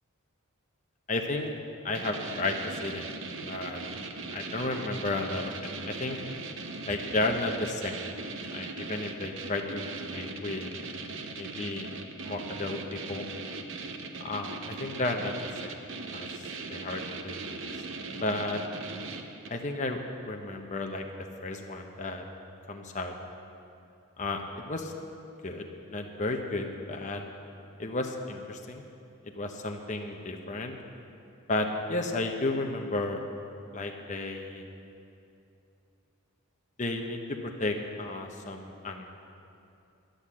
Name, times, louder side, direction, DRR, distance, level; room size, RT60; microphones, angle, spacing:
voice 1, 1.1-1.6 1.8-3.1 3.4-3.8 4.3-6.2 6.9-8.1 8.5-10.7 11.4-11.9 12.2-13.3 14.2-15.8 16.1-17.7 18.2-18.6 19.5-21.0 21.4-22.2 22.7-23.1 24.2-24.9 25.4-27.2 27.8-28.8 29.3-30.8 31.5-33.2 33.7-34.6 36.8-39.1, left 2 dB, 35° left, 3 dB, 0.8 m, -33 dB
sound 1, 1.9-19.7, right 3 dB, 55° right, 0.8 m, -39 dB
11.5 x 10.5 x 7.4 m, 2.7 s
head